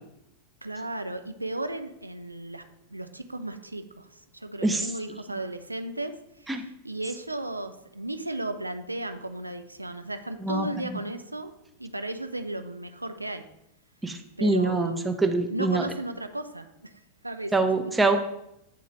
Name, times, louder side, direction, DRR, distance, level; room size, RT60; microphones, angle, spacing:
voice 1, 0.6-2.6 2.9-11.5 11.8-13.4 14.4-15.2 15.5-17.7, right 2 dB, 85° right, 8 dB, 0.4 m, -35 dB
voice 2, 10.4-11.0 14.0-15.8 17.5-18.2, right 3 dB, 10° right, 6 dB, 0.6 m, -25 dB
8.2 x 3.8 x 3.2 m, 0.81 s
figure-of-eight pair, 90°, 0 cm